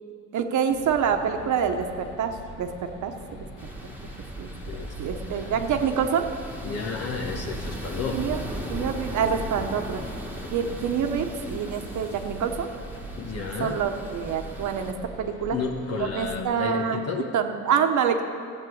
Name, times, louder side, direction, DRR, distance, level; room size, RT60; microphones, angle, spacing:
voice 1, 0.3-3.1 4.4-4.5 5.0-6.3 8.1-8.4 8.7-10.1 10.5-12.7 13.6-15.6 16.0-17.0 17.3-18.2, right 7 dB, 75° right, 6 dB, 1.2 m, -26 dB
sound 1, 0.7-16.4, equal, 90° left, 2.2 m, -44 dB
sound 2, 3.6-14.9, right 1 dB, 5° right, 1.6 m, -37 dB
voice 2, 4.7-5.7 6.6-8.3 10.4-10.5 13.1-13.8 15.5-17.3, left 5 dB, 55° left, 1 dB, 1.4 m, -32 dB
14.0 x 8.1 x 8.0 m, 2.4 s
cardioid pair, 110°, 30 cm